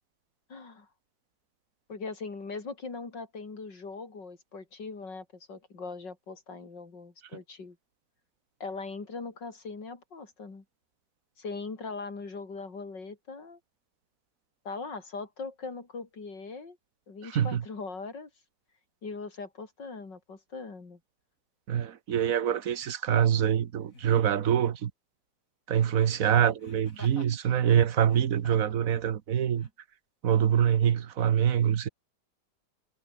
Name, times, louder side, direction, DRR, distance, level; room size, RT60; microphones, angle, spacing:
voice 1, 0.5-0.9 1.9-7.8 8.6-10.6 11.4-13.6 14.6-16.8 17.1-18.3 19.0-21.0, left 4 dB, 80° left, 4.4 m, -40 dB
voice 2, 17.2-17.6 21.7-24.9 25.7-29.7 30.2-31.9, right 9 dB, 55° right, 1.3 m, -25 dB
Laughter, 22.4-22.6 23.9-24.3 26.6-27.4 28.0-28.8 29.6-29.7, left 2 dB, 45° left, 6.2 m, -51 dB
omnidirectional pair, 1.9 m